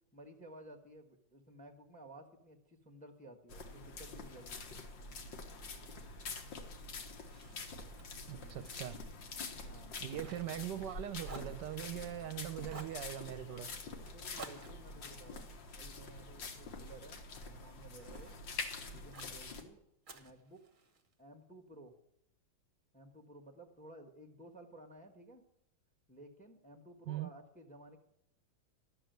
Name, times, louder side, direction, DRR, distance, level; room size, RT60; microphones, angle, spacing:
voice 1, 0.1-4.8 8.3-8.7 9.6-10.4 14.0-18.4 18.9-19.8 20.1-20.7 21.2-21.9 22.9-25.4 26.1-28.0, right 1 dB, 5° left, 4 dB, 1.1 m, -55 dB
sound 1, 3.5-19.6, left 3 dB, 75° left, 2.1 m, -46 dB
Fire, 7.2-11.0 11.2-12.3 12.7-13.0 14.4-16.8 17.3-18.4 19.1-19.4 20.0-21.1, right 3 dB, 30° right, 1.1 m, -54 dB
voice 2, 8.3-9.0 10.0-13.7 27.1-27.3, right 12 dB, 70° right, 11 dB, 1.2 m, -41 dB
12.0 x 7.0 x 9.1 m, 0.80 s
omnidirectional pair, 2.0 m